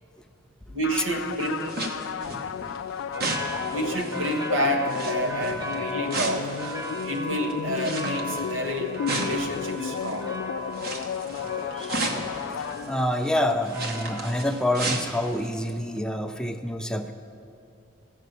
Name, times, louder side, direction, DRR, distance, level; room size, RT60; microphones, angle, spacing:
voice 1, 0.7-1.8 3.7-6.5 7.0-10.3, equal, 80° right, 3 dB, 1.2 m, -29 dB
sound 1, 0.8-13.4, left 8 dB, 80° left, 0.3 m, -33 dB
sound 2, 1.1-10.3 10.7-15.7 16.0-16.1, right 2 dB, 50° right, 1.1 m, -35 dB
sound 3, 3.1-14.5, equal, 20° right, 1.1 m, -37 dB
voice 2, 11.7-12.0 12.6-17.1, left 1 dB, 5° left, 5 dB, 0.3 m, -27 dB
14.5 x 6.2 x 7.9 m, 2.6 s
head